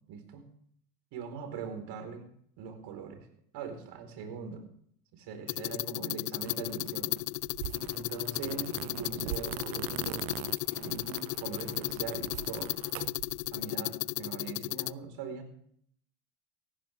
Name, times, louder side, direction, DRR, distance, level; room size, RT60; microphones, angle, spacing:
voice 1, 0.1-0.4 1.1-2.2 2.6-3.3 3.5-4.6 5.1-7.2 7.9-10.3 10.8-12.7 13.5-15.5, right 6 dB, 60° right, 6 dB, 4.7 m, -41 dB
sound 1, 5.5-14.9, left 26 dB, 65° left, 0.5 m, -35 dB
sound 2, 6.4-13.6, right 19 dB, 80° right, 0.6 m, -42 dB
18.5 x 15.0 x 3.6 m, 0.65 s
supercardioid pair, 100°, 47 cm